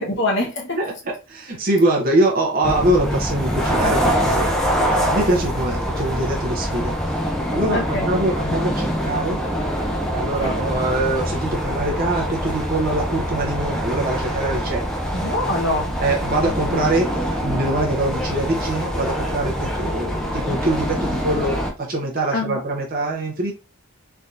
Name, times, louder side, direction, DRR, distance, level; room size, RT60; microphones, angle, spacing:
voice 1, 0.0-0.8 7.7-8.1 10.4-10.6 15.1-15.9 22.3-22.6, left 2 dB, 55° left, 0.9 m, -24 dB
voice 2, 0.8-4.5 4.9-9.4 10.1-15.0 16.0-23.5, right 1 dB, 40° right, 0.7 m, -23 dB
sound 1, 2.6-21.7, equal, 5° left, 0.4 m, -24 dB
3.4 x 2.7 x 2.4 m
head